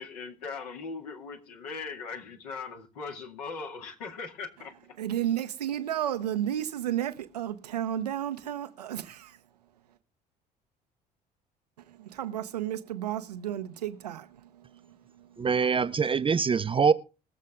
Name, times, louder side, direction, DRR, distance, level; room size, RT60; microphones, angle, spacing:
voice 1, 0.0-4.7, left 4 dB, 75° left, 2.2 m, -39 dB
voice 2, 5.0-9.4 11.9-15.4, right 11 dB, 85° right, 0.8 m, -33 dB
voice 3, 15.4-16.9, right 5 dB, 25° right, 0.6 m, -24 dB
21.0 x 7.4 x 3.6 m
figure-of-eight pair, 55°, 20 cm